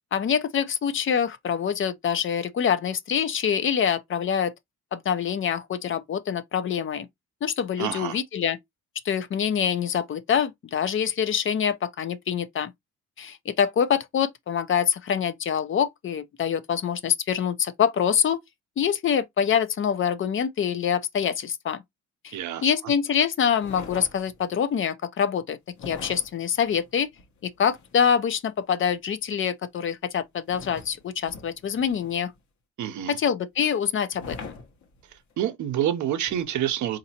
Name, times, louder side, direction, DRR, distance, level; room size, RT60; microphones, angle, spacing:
voice 1, 0.1-4.5 4.9-7.1 7.4-8.6 9.0-12.7 13.2-18.4 18.8-21.8 22.2-25.6 25.9-27.1 27.4-32.3 33.1-34.4, left 8 dB, 45° left, 0.5 m, -25 dB
voice 2, 7.8-8.2 22.3-22.7 32.8-33.2 35.1-37.0, right 11 dB, 75° right, 0.7 m, -28 dB
sound 1, 23.6-24.6 25.7-28.1 30.5-32.4 34.1-35.3 36.3-36.4, left 5 dB, 65° left, 1.0 m, -43 dB
4.1 x 2.6 x 2.7 m
cardioid pair, 90°, 30 cm